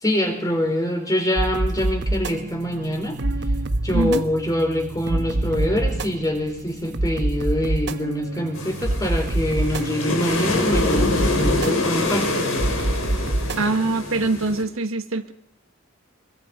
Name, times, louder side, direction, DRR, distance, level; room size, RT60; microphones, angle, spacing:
voice 1, 0.0-3.2 3.8-12.7, equal, 15° left, 3 dB, 4.3 m, -25 dB
sound 1, 1.4-13.7, right 1 dB, 55° right, 1.0 m, -26 dB
voice 2, 3.9-4.3 13.6-15.3, right 2 dB, 75° right, 7 dB, 1.6 m, -23 dB
sound 2, 8.6-14.6, left 2 dB, 80° left, 5.6 m, -25 dB
24.5 x 22.5 x 5.1 m, 0.68 s
head